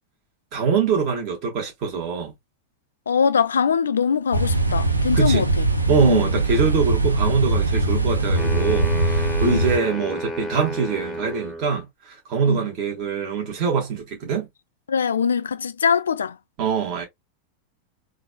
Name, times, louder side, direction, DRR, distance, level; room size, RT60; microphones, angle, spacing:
voice 1, 0.5-2.3 5.1-5.4 5.9-14.5 16.6-17.0, right 6 dB, 40° right, 1.6 m, -24 dB
voice 2, 3.1-5.7 6.0-6.3 9.4-9.7 12.5-12.7 14.9-16.4, left 6 dB, 70° left, 0.3 m, -22 dB
sound 1, 4.3-9.8, right 2 dB, 80° right, 0.5 m, -21 dB
sound 2, 8.4-11.7, equal, ahead, 0.8 m, -31 dB
3.8 x 2.5 x 2.3 m
figure-of-eight pair, 90°, 0 cm